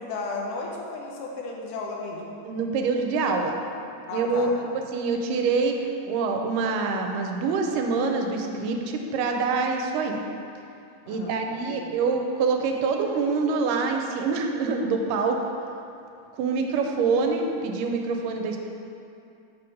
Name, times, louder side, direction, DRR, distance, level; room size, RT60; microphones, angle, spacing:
voice 1, 0.0-2.4 4.1-4.5 11.1-11.3 11.7-12.0, left 3 dB, 80° left, -1 dB, 2.3 m, -34 dB
voice 2, 2.4-3.5 4.1-5.8 6.1-10.2 11.1-15.4 16.4-18.6, right 4 dB, 90° right, 3 dB, 2.2 m, -25 dB
6.4 x 6.1 x 4.9 m, 2.6 s
omnidirectional pair, 3.8 m